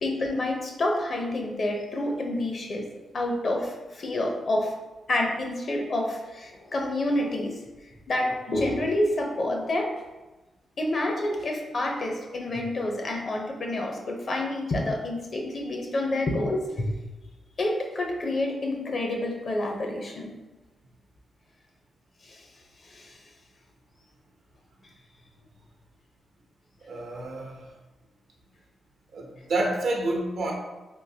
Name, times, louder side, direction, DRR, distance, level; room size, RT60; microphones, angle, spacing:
voice 1, 0.0-2.9 3.1-4.7 5.1-7.6 8.1-9.9 10.8-17.0 17.6-20.3 22.2-22.5 22.8-23.2, left 1 dB, 55° left, 1 dB, 0.7 m, -28 dB
voice 2, 26.9-27.7 29.1-30.5, right 2 dB, 75° right, 0 dB, 0.7 m, -29 dB
3.7 x 2.6 x 2.8 m, 1.1 s
cardioid pair, 60°, 0 cm